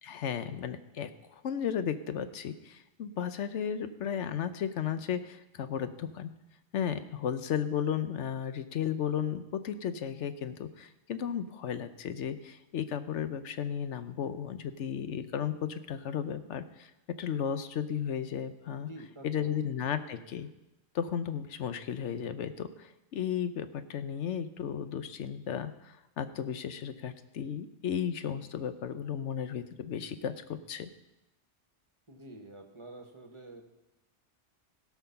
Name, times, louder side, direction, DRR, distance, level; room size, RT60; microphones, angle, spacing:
voice 1, 0.0-6.3 6.7-16.9 17.2-18.9 19.2-20.5 20.9-30.9, left 8 dB, 75° left, 11 dB, 1.0 m, -34 dB
voice 2, 18.7-19.9 32.1-33.6, right 2 dB, 25° right, 4 dB, 1.3 m, -48 dB
17.0 x 6.0 x 5.7 m, 0.95 s
omnidirectional pair, 1.2 m